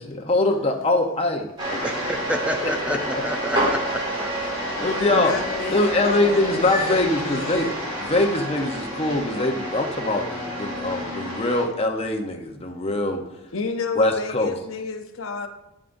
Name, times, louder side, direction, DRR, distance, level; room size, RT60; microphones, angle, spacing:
voice 1, 0.0-1.8 2.6-3.0 4.8-5.3 5.7-7.7 8.0-13.2 14.0-14.6, left 2 dB, 30° left, 3 dB, 0.8 m, -23 dB
sound 1, 1.6-11.6, equal, 20° right, 2.0 m, -28 dB
voice 2, 1.8-4.3, equal, 5° right, 3 dB, 0.5 m, -29 dB
voice 3, 5.1-7.9 13.5-15.5, left 4 dB, 70° left, 6 dB, 0.6 m, -31 dB
8.9 x 7.4 x 2.6 m, 0.88 s
head